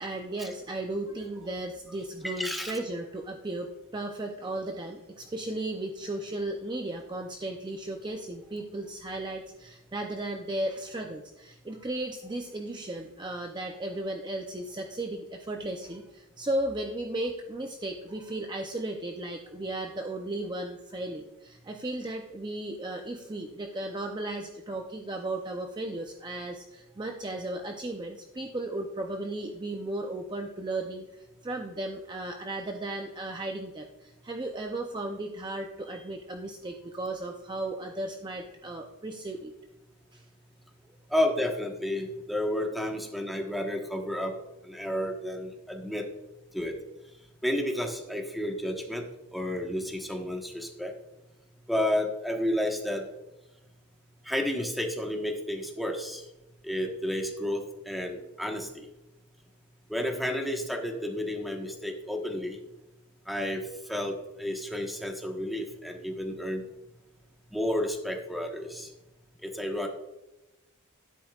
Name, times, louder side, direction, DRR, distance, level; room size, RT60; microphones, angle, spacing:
voice 1, 0.0-39.5 40.1-40.2, right 1 dB, 20° right, 3 dB, 0.6 m, -35 dB
voice 2, 2.2-2.8 41.1-44.3 44.6-46.0 46.5-46.8 47.4-49.0 49.3-50.9 51.7-53.0 54.2-56.2 56.6-58.9 59.9-62.6 63.3-63.6 63.9-66.6 67.5-68.9 69.4-69.9, left 1 dB, ahead, 2 dB, 1.2 m, -31 dB
12.0 x 10.0 x 2.4 m, 0.99 s
head